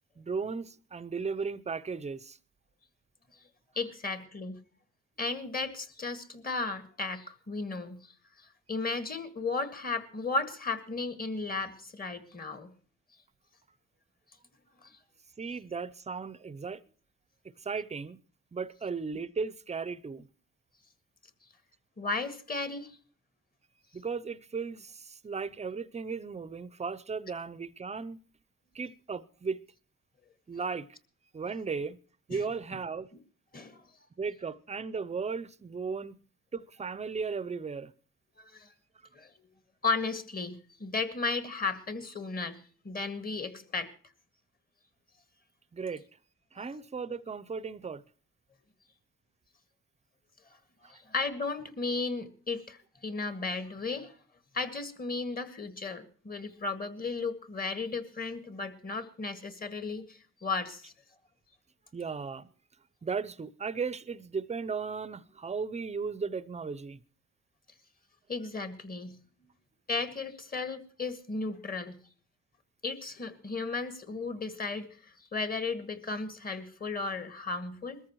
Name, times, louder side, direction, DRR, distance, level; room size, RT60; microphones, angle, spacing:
voice 1, 0.2-2.4 15.4-16.8 17.6-18.2 18.5-20.3 23.9-28.2 28.7-29.6 30.5-30.9 31.3-32.0 32.3-33.1 34.2-36.2 36.5-37.9 45.7-46.0 46.5-48.0 61.9-62.5 63.0-67.0, right 5 dB, 20° right, 0.6 m, -36 dB
voice 2, 3.8-4.6 5.2-8.0 8.7-12.7 14.8-14.9 22.0-23.0 32.3-32.4 33.5-33.8 38.4-38.7 39.1-39.3 39.8-43.9 46.6-46.7 50.9-54.1 54.5-60.9 68.3-69.2 69.9-72.0 72.8-78.0, left 3 dB, 30° left, 1.9 m, -35 dB
21.5 x 14.0 x 3.1 m
cardioid pair, 90°, 30 cm